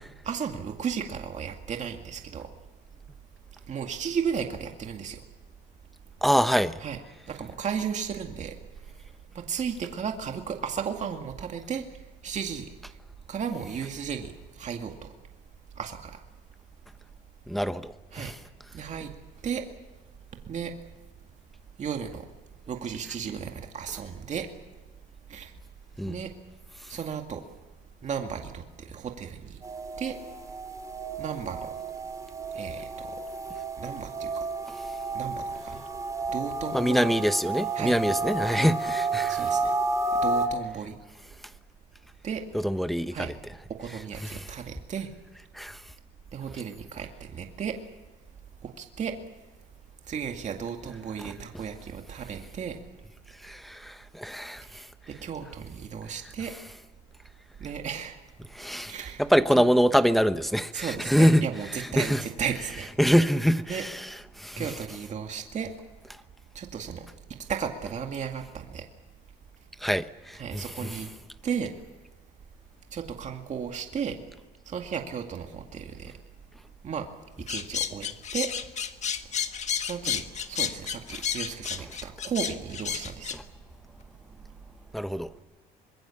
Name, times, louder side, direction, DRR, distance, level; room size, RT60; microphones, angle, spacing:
voice 1, 0.2-2.5 3.7-5.2 6.8-7.0 7.3-8.6 9.3-11.8 12.2-12.7 13.3-15.1 15.8-16.2 18.1-18.3 18.7-19.1 19.4-19.6 20.5-20.7 21.8-22.3 22.7-24.5 25.3-25.5 26.1-26.3 26.9-27.4 28.0-29.6 30.0-30.2 31.2-31.7 32.5-33.2 33.8-34.5 35.1-35.8 36.3-37.1 37.7-38.0 38.5-38.7 39.3-39.7 40.1-41.0 42.2-42.4 43.1-43.3 43.8-45.1 46.3-47.8 48.6-49.1 50.1-52.8 54.7-56.5 57.6-58.2 58.9-59.2 59.5-59.7 60.7-62.9 63.7-63.8 64.6-65.7 66.5-67.1 67.5-68.9 70.4-71.1 71.4-71.7 72.9-74.2 74.7-76.1 76.8-77.1 77.5-78.5 79.8-83.3, right 7 dB, 45° right, 2.2 m, -34 dB
voice 2, 6.2-6.7 17.5-17.9 18.2-18.3 26.0-26.2 36.7-39.4 42.6-43.3 45.6-45.8 53.4-54.6 58.5-58.9 59.2-61.4 62.0-62.2 63.0-63.9 64.4-64.6 69.8-70.4 84.9-85.3, equal, ahead, 1.0 m, -24 dB
sound 1, 29.6-40.5, right 3 dB, 20° right, 2.9 m, -31 dB
sound 2, 77.5-83.4, left 8 dB, 45° left, 1.5 m, -31 dB
25.0 x 21.5 x 7.2 m
cardioid pair, 110°, 17 cm